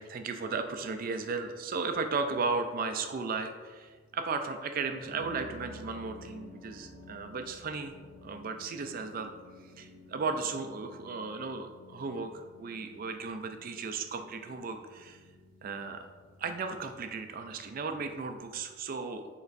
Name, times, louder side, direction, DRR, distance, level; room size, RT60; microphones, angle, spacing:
voice 1, 0.0-7.9 8.2-9.3 9.8-15.2 15.6-16.1 16.4-19.3, right 4 dB, 45° right, 7 dB, 0.4 m, -35 dB
sound 1, 1.4-18.7, left 1 dB, 70° right, 0.7 m, -54 dB
6.6 x 3.0 x 2.5 m, 1.4 s
head